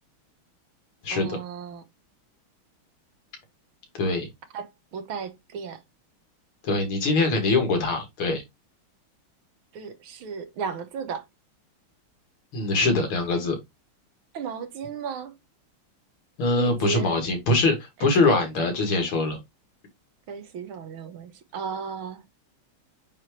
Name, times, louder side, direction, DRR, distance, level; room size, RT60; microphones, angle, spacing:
voice 1, 1.1-1.8 4.5-5.8 9.7-11.2 14.3-15.4 16.5-17.2 18.0-18.5 20.3-22.2, right 6 dB, 75° right, 1.9 m, -35 dB
voice 2, 3.9-4.3 6.6-8.4 12.5-13.6 16.4-19.4, left 2 dB, 80° left, 3.0 m, -23 dB
8.8 x 3.4 x 3.2 m
omnidirectional pair, 2.3 m